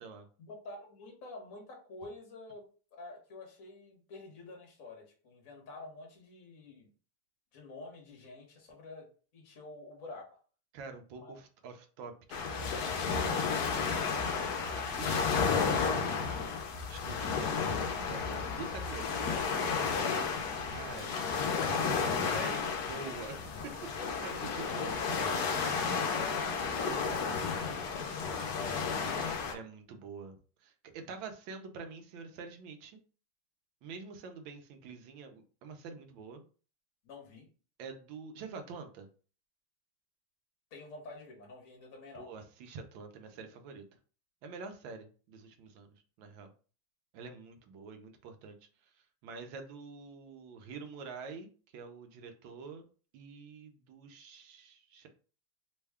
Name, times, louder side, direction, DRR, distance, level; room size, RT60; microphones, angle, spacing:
voice 1, 0.5-6.9 7.5-10.4 11.1-11.4 19.8-20.4 21.1-21.2 22.0-23.4 24.0-25.8 26.1-29.2 37.0-37.4 40.7-42.3, left 3 dB, 50° left, 0 dB, 1.2 m, -48 dB
voice 2, 10.7-12.1 12.5-13.9 14.7-16.5 16.9-17.4 17.6-19.2 20.7-21.1 21.6-21.9 22.3-23.7 24.2-25.0 29.5-33.0 33.8-36.4 37.8-39.1 42.1-43.8 44.4-46.5 47.1-48.6 48.8-52.9 53.1-55.1, right 4 dB, 75° right, 6 dB, 1.4 m, -46 dB
sound 1, 12.3-29.5, left 5 dB, 70° left, 1.0 m, -32 dB
3.5 x 2.2 x 3.3 m, 0.38 s
omnidirectional pair, 2.2 m